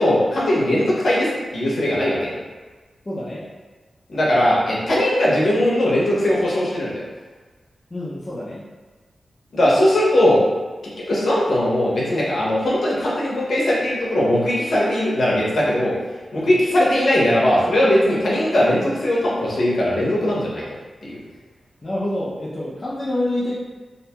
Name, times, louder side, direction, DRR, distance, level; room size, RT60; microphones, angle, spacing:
voice 1, 0.0-2.3 4.1-7.0 9.5-10.4 11.1-15.9 16.3-20.7 21.0-21.2, left 1 dB, 65° left, -5 dB, 0.7 m, -19 dB
voice 2, 3.1-3.5 7.9-8.6 16.3-16.7 21.8-23.6, left 1 dB, 25° left, -7 dB, 0.4 m, -27 dB
2.6 x 2.2 x 2.8 m, 1.3 s
wide cardioid pair, 115°, 0 cm